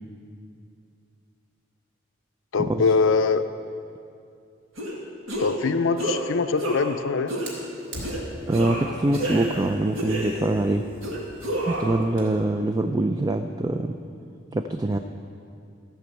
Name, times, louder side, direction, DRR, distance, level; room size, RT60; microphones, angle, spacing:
voice 1, 2.5-3.4 5.4-7.3, left 4 dB, 70° left, 10 dB, 0.5 m, -23 dB
sound 1, 4.8-5.0 5.3-5.6 6.0-6.2 6.6-7.0 7.3-7.6 8.0-8.2 8.5-9.7 10.0-10.6 11.0-12.0, right 1 dB, 75° right, 2.0 m, -30 dB
Fire, 7.5-12.4, equal, 60° right, 3.4 m, -42 dB
voice 2, 8.5-10.8 11.7-14.0 14.5-15.0, right 2 dB, 20° right, 6 dB, 0.3 m, -24 dB
14.0 x 6.1 x 8.2 m, 2.5 s
head